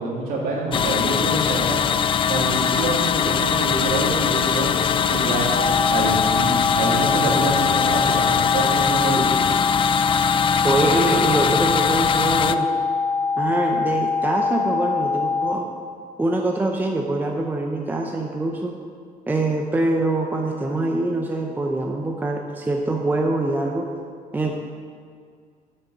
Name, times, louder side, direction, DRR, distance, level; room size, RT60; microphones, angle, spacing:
voice 1, 0.0-1.8 2.3-5.5 5.9-9.2, right 2 dB, 75° right, -3 dB, 2.6 m, -26 dB
sound 1, 0.7-12.6, left 7 dB, 35° left, 0.3 m, -22 dB
sound 2, 5.5-15.5, left 4 dB, 75° left, 1.6 m, -23 dB
voice 2, 10.6-12.7 13.4-15.7 16.2-18.7 19.3-23.9 24.3-24.5, right 2 dB, 10° right, 1 dB, 0.7 m, -24 dB
7.1 x 6.8 x 7.7 m, 2.1 s
cardioid pair, 120°, 15 cm